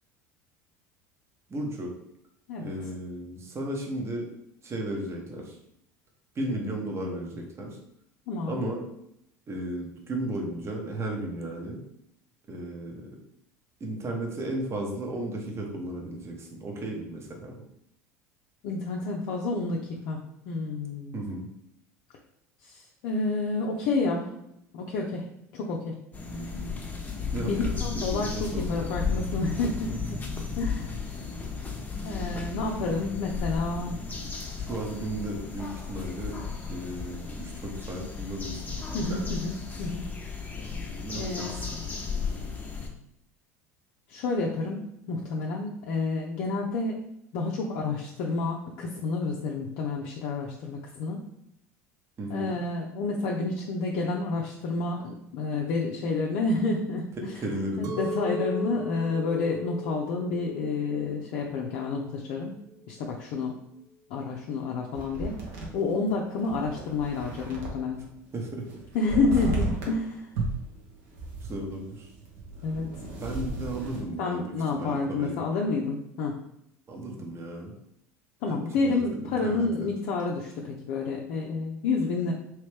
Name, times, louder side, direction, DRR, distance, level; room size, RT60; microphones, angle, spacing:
voice 1, 1.5-1.9 2.6-4.3 4.6-5.6 6.3-7.8 8.4-8.8 9.5-11.8 12.5-13.1 13.8-17.6 21.1-21.5 27.3-27.5 27.9-28.9 34.6-36.4 36.7-39.3 41.0-41.6 52.2-52.5 57.4-58.0 68.3-68.6 69.4-69.5 71.4-72.1 73.2-75.4 76.9-77.7 78.5-79.9, right 1 dB, 30° right, 0 dB, 1.0 m, -35 dB
voice 2, 8.3-8.7 18.6-20.2 20.5-21.2 22.6-24.3 24.7-25.9 27.4-30.0 30.6-30.9 32.0-34.0 38.9-40.1 40.6-40.7 41.1-41.9 44.1-47.0 47.3-51.2 52.3-57.1 57.8-62.6 62.9-63.6 64.1-65.4 65.7-68.1 68.9-70.2 72.6-72.9 74.2-76.4 78.4-82.3, left 3 dB, 60° left, -1 dB, 0.5 m, -29 dB
sound 1, 26.1-42.9, left 5 dB, 20° left, 0.7 m, -34 dB
Chink clink, 57.8-63.0, left 1 dB, 45° right, 0.4 m, -37 dB
sound 2, 64.9-68.0 68.3-70.0 70.3-74.0, right 2 dB, 70° right, 1.0 m, -35 dB
3.1 x 3.1 x 3.3 m, 0.77 s
hypercardioid pair, 75°, 8 cm